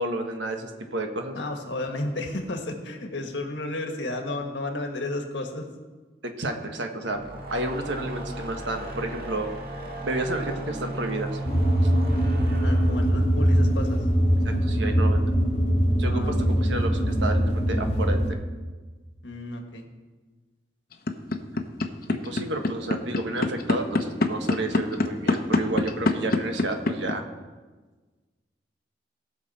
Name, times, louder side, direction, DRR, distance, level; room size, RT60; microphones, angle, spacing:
voice 1, 0.0-1.4 6.2-9.5 10.0-11.4 14.4-15.3 16.0-18.2 22.1-27.2, right 2 dB, 75° right, 5 dB, 1.3 m, -31 dB
voice 2, 1.3-5.6 12.6-14.0 16.0-16.6 19.2-19.9, left 2 dB, 75° left, 3 dB, 1.6 m, -32 dB
sound 1, 7.0-14.4, right 1 dB, 55° right, 1.7 m, -36 dB
sound 2, 11.5-18.3, equal, 30° left, 1.3 m, -22 dB
sound 3, 20.9-27.1, left 2 dB, 50° left, 0.8 m, -23 dB
19.0 x 6.5 x 4.2 m, 1.3 s
head